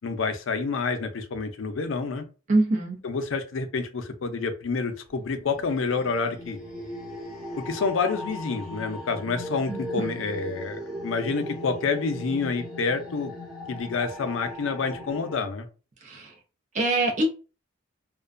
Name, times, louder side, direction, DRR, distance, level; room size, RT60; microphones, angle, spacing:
voice 1, 0.0-2.2 3.0-6.6 7.6-13.3 13.7-15.7, left 4 dB, 85° left, 0.5 m, -28 dB
voice 2, 2.5-3.0 9.7-10.2 16.0-16.3 16.7-17.3, right 2 dB, 40° right, 0.5 m, -24 dB
sound 1, 5.1-15.3, left 1 dB, 5° right, 1.0 m, -38 dB
2.4 x 2.2 x 2.4 m
head